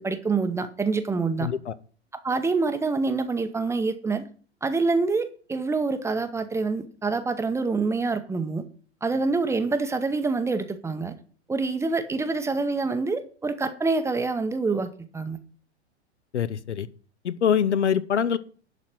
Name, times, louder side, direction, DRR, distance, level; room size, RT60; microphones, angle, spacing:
voice 1, 0.0-1.5 2.2-4.3 4.6-8.6 9.0-11.1 11.5-15.4, right 3 dB, 10° right, 0.7 m, -26 dB
voice 2, 1.4-1.7 16.3-16.9 17.2-18.4, left 8 dB, 75° left, 0.8 m, -24 dB
11.0 x 4.2 x 7.5 m
figure-of-eight pair, 100°, 34 cm